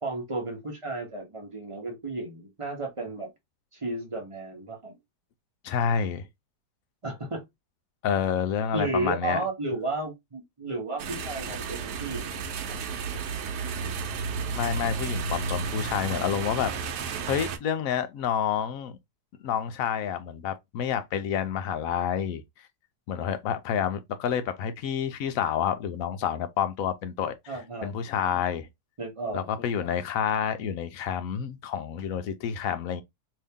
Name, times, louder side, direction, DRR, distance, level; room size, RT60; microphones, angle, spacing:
voice 1, 0.0-3.3 3.7-5.0 7.0-7.4 8.7-12.4 27.5-28.0 29.0-29.5, right 2 dB, 25° right, 0.8 m, -33 dB
voice 2, 5.6-6.3 8.0-9.4 14.5-16.7 17.3-19.0 19.4-22.4 23.1-27.5 27.8-28.7 29.3-33.0, left 8 dB, 70° left, 0.9 m, -29 dB
sound 1, 11.0-17.6, right 5 dB, 75° right, 1.2 m, -32 dB
2.8 x 2.8 x 3.5 m
omnidirectional pair, 1.8 m